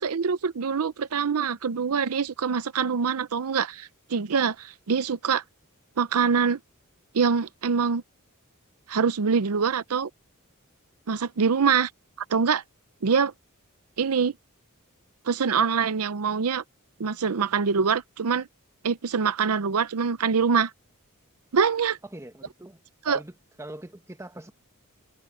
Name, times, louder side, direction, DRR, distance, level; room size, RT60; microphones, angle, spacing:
voice 1, 0.0-5.4 6.0-6.6 7.1-8.0 8.9-10.1 11.1-11.9 12.3-12.6 13.0-13.3 14.0-14.3 15.3-16.6 17.0-18.5 18.8-20.7 21.5-22.0 23.1-23.2, right 6 dB, 80° right, 0.6 m, -24 dB
voice 2, 22.0-22.8 23.1-24.5, right 1 dB, 15° right, 1.5 m, -42 dB
head